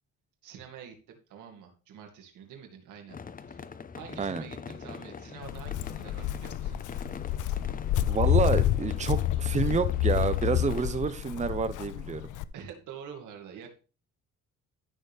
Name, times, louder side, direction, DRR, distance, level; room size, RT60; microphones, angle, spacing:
voice 1, 0.4-3.2 3.5-3.7 3.9-6.8 12.5-13.7, right 8 dB, 85° right, 3 dB, 2.3 m, -47 dB
sound 1, 3.1-10.9, left 5 dB, 30° left, 0.7 m, -43 dB
Walk footsteps, 5.4-12.4, left 12 dB, 80° left, 0.6 m, -29 dB
voice 2, 8.1-12.2, right 5 dB, 25° right, 12 dB, 0.8 m, -28 dB
13.0 x 6.2 x 3.5 m, 0.36 s
cardioid pair, 90°, 30 cm